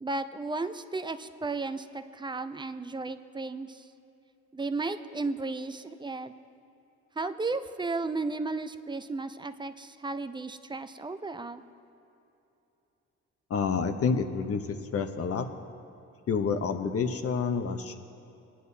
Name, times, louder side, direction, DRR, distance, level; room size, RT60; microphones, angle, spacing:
voice 1, 0.0-3.9 4.5-6.3 7.2-11.6, right 3 dB, 15° right, 10 dB, 0.4 m, -34 dB
voice 2, 13.5-14.6 14.9-15.5 16.3-18.0, left 5 dB, 50° left, 8 dB, 0.9 m, -28 dB
20.0 x 10.0 x 2.8 m, 2.9 s
cardioid pair, 90°, 30 cm